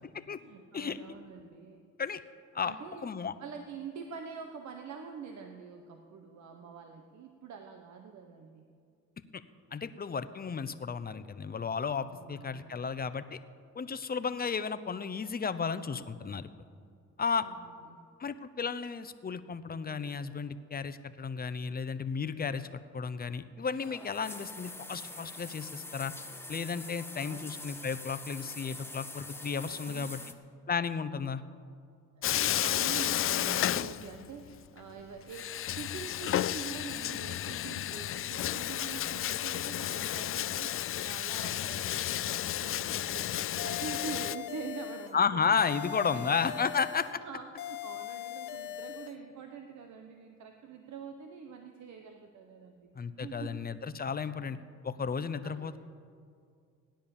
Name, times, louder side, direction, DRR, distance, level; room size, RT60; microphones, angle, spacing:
voice 1, 0.4-1.8 2.6-3.1 3.4-8.6 12.1-12.7 17.4-18.0 27.2-27.5 29.9-30.3 32.2-45.5 46.0-46.5 47.2-53.6 54.2-54.6 55.4-55.8, right 6 dB, 70° right, 5 dB, 1.2 m, -45 dB
voice 2, 3.0-3.3 9.3-9.4 9.7-13.4 13.8-16.5 17.2-17.5 18.2-26.1 26.5-30.2 30.7-31.4 45.1-47.2 53.0-54.6 54.8-55.8, left 6 dB, 30° left, 12 dB, 0.8 m, -33 dB
sound 1, 23.7-30.3, left 2 dB, 10° left, 1.2 m, -45 dB
Bathtub (filling or washing), 32.2-34.5 34.8-34.9 35.3-44.4, left 12 dB, 45° left, 0.4 m, -32 dB
sound 2, 43.6-45.2 45.6-47.2 47.6-49.2, left 14 dB, 85° left, 0.9 m, -41 dB
17.0 x 10.5 x 7.2 m, 2.3 s
cardioid pair, 90°, 30 cm